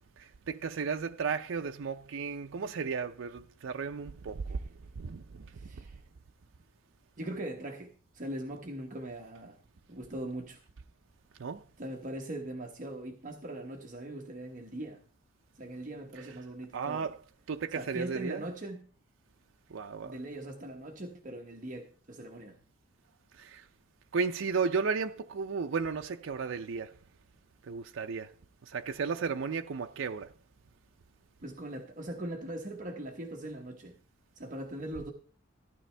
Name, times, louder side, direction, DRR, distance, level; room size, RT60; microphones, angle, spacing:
voice 1, 0.2-4.6 5.0-5.5 11.4-11.6 16.2-16.3 16.7-17.2 17.5-18.4 19.7-20.2 23.4-23.6 24.1-26.9 27.7-28.3 28.7-30.3, right 5 dB, 75° right, 0.5 m, -34 dB
voice 2, 5.5-6.0 7.2-9.6 9.9-10.6 11.8-15.0 15.6-17.1 17.7-18.8 20.0-22.6 31.4-33.9 34.4-35.1, right 1 dB, 40° right, 1.1 m, -40 dB
15.0 x 10.0 x 3.3 m
head